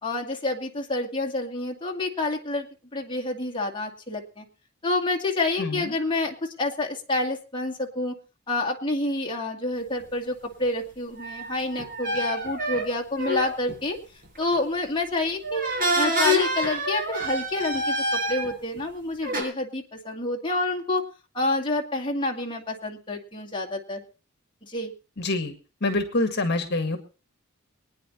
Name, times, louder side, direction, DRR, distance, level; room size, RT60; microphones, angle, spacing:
voice 1, 0.0-2.7 2.9-4.4 4.8-8.2 8.5-14.0 14.4-15.6 16.0-21.0 21.3-24.0 24.6-24.9, left 2 dB, 25° left, 1 dB, 2.1 m, -28 dB
voice 2, 5.6-5.9 25.2-25.5 25.8-27.0, left 2 dB, 50° left, 7 dB, 1.8 m, -26 dB
sound 1, 11.2-13.8 14.3-14.6 15.4-18.8 19.2-19.4, equal, 45° right, 5.7 m, -27 dB
24.0 x 9.8 x 4.3 m, 0.35 s
head